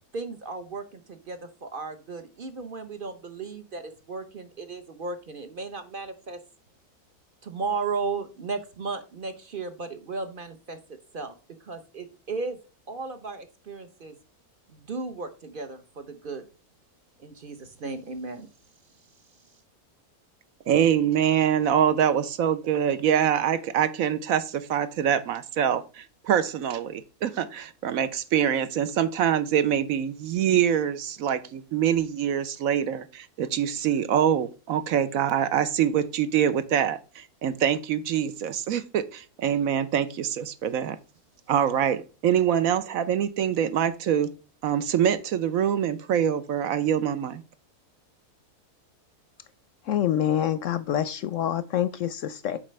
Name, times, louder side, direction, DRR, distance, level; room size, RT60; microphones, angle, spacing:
voice 1, 0.1-6.4 7.4-10.8 11.1-11.3 11.6-12.6 12.9-14.2 14.7-16.4 17.2-18.5, right 4 dB, 45° right, 0.8 m, -35 dB
voice 2, 20.7-41.0 41.5-44.3 44.6-47.4, right 9 dB, 70° right, 1.1 m, -25 dB
voice 3, 49.9-52.6, left 10 dB, 70° left, 0.8 m, -26 dB
7.5 x 5.1 x 3.2 m
omnidirectional pair, 1.6 m